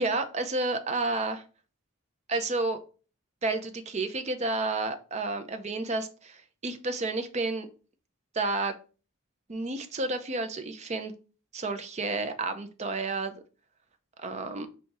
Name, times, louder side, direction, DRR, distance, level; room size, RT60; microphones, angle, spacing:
voice 1, 0.0-1.4 2.3-2.8 3.4-7.7 8.3-8.7 9.5-11.1 11.5-13.3 14.2-14.7, right 3 dB, 30° right, 8 dB, 0.5 m, -30 dB
4.2 x 2.7 x 4.6 m, 0.35 s
head